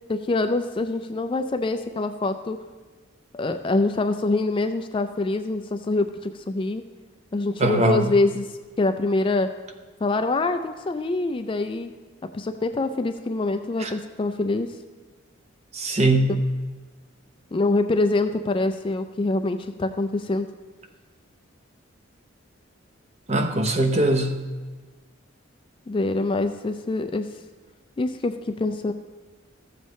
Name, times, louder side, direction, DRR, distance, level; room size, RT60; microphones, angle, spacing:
voice 1, 0.1-2.6 3.3-6.8 7.3-8.5 8.8-9.5 10.0-11.9 12.3-14.7 16.3-16.4 17.5-20.5 25.9-27.3 28.0-28.9, left 2 dB, 25° left, 8 dB, 0.3 m, -25 dB
voice 2, 7.6-8.0 13.8-13.9 15.7-16.3 23.3-24.3, right 2 dB, 30° right, 6 dB, 0.7 m, -21 dB
14.0 x 7.2 x 3.1 m, 1.3 s
head